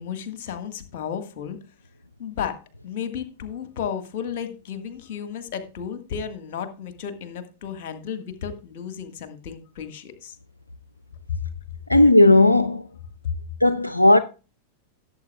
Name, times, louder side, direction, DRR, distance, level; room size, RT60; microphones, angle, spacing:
voice 1, 0.0-1.6 2.2-10.4, left 8 dB, 50° left, 1.6 m, -33 dB
voice 2, 11.9-12.9 13.6-14.2, left 2 dB, 85° left, 0.4 m, -15 dB
17.0 x 7.8 x 2.4 m
figure-of-eight pair, 90°, 0 cm